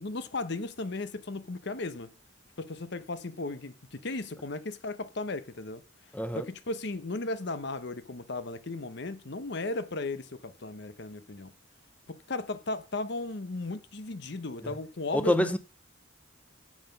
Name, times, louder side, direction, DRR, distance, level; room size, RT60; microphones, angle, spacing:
voice 1, 0.0-2.1 2.6-5.8 6.3-11.5 12.1-15.5, left 2 dB, 60° left, 0.9 m, -35 dB
voice 2, 6.1-6.5 14.6-14.7 15.1-15.6, left 1 dB, 5° left, 0.7 m, -27 dB
9.2 x 7.5 x 5.7 m
head